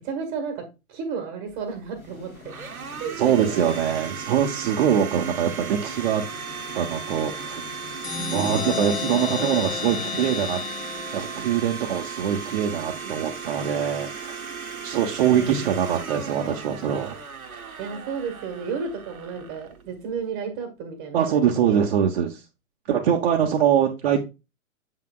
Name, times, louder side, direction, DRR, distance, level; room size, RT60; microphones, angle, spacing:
voice 1, 0.0-0.6 0.9-2.6 3.0-3.6 13.0-13.1 15.0-15.1 15.3-15.7 17.8-21.4, right 5 dB, 25° right, 4 dB, 1.2 m, -32 dB
Domestic sounds home sounds, 1.5-20.3, right 5 dB, 80° right, 1.1 m, -36 dB
sound 1, 2.0-8.7, left 4 dB, 80° left, 3.2 m, -48 dB
voice 2, 3.2-6.2 6.7-7.6 8.3-10.6 11.1-14.4 14.8-17.1 21.1-22.4 22.9-24.2, right 9 dB, 40° right, 0 dB, 0.9 m, -23 dB
sound 2, 8.0-11.6, left 6 dB, 30° left, 2.1 m, -31 dB
7.3 x 5.8 x 2.3 m, 0.26 s
figure-of-eight pair, 120°, 42 cm